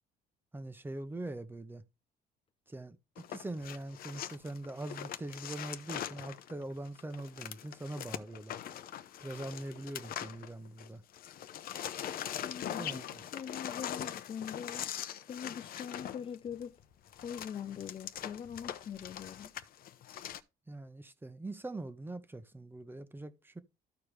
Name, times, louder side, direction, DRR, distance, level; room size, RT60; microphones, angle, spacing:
voice 1, 0.5-1.8 2.7-8.5 9.2-11.0 12.8-13.3 20.7-23.6, right 2 dB, 10° right, 0.9 m, -42 dB
sound 1, 3.2-10.9 11.1-20.4, left 10 dB, 60° left, 0.8 m, -42 dB
voice 2, 12.4-13.0 13.3-14.9 15.3-16.8 17.2-19.5, left 8 dB, 35° left, 0.4 m, -42 dB
14.0 x 4.7 x 3.3 m
cardioid pair, 110°, 17 cm